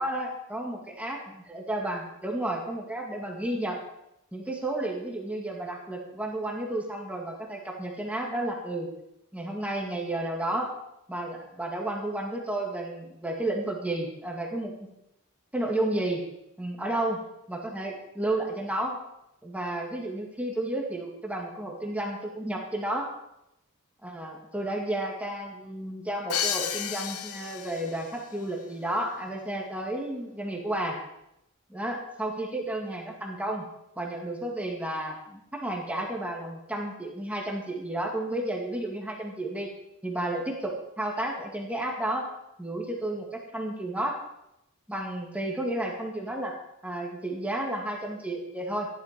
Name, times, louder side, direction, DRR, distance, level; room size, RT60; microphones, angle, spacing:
voice 1, 0.0-3.8 4.3-8.9 9.3-10.7 11.1-14.9 15.5-16.2 16.6-17.2 17.5-19.0 19.4-23.1 24.0-31.0 31.7-33.7 34.0-39.7 40.0-42.3 42.6-44.2 44.9-46.5 46.8-48.9, right 1 dB, 5° right, 0 dB, 2.1 m, -32 dB
Crash cymbal, 26.3-28.2, left 8 dB, 80° left, 1.0 m, -32 dB
15.0 x 11.5 x 5.2 m, 0.82 s
head